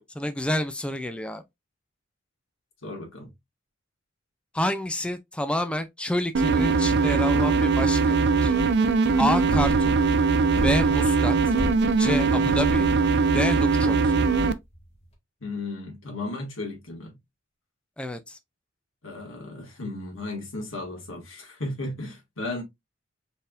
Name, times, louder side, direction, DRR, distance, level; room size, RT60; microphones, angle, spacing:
voice 1, 0.2-1.4 4.5-8.6 9.2-10.0 10.6-11.5 12.0-12.9 13.3-14.1 18.0-18.4, left 1 dB, 5° left, 0.3 m, -28 dB
voice 2, 2.8-3.3 15.4-17.2 19.0-22.6, left 2 dB, 85° left, 1.9 m, -35 dB
sound 1, 6.3-14.5, right 4 dB, 60° right, 0.4 m, -21 dB
sound 2, 9.5-15.1, equal, 30° left, 1.4 m, -33 dB
4.4 x 3.5 x 2.4 m
head